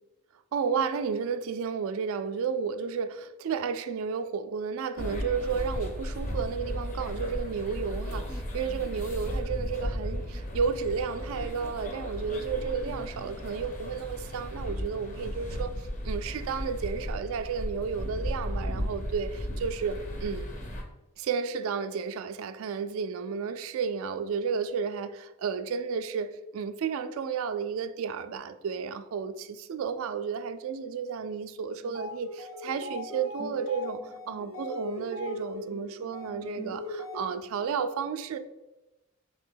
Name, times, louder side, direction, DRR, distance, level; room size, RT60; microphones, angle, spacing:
voice 1, 0.5-20.5 21.2-38.4, right 6 dB, 75° right, 0.3 m, -32 dB
sound 1, 5.0-20.8, equal, 35° left, 0.5 m, -35 dB
sound 2, 31.8-37.6, left 1 dB, 75° left, 0.9 m, -39 dB
3.4 x 2.8 x 3.7 m
head